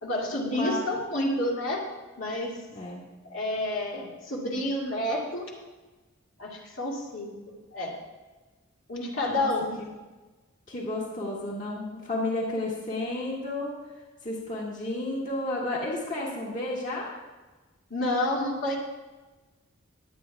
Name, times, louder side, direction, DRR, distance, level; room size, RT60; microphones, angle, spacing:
voice 1, 0.0-1.8 2.2-2.6 3.2-5.5 6.4-7.3 7.7-8.0 8.9-9.8 17.9-18.8, left 1 dB, 70° left, -3 dB, 2.4 m, -29 dB
voice 2, 2.7-3.0 9.3-9.5 9.8-9.9 10.7-13.8 14.2-17.1, left 2 dB, 40° left, -3 dB, 1.9 m, -32 dB
21.5 x 8.7 x 2.4 m, 1.2 s
head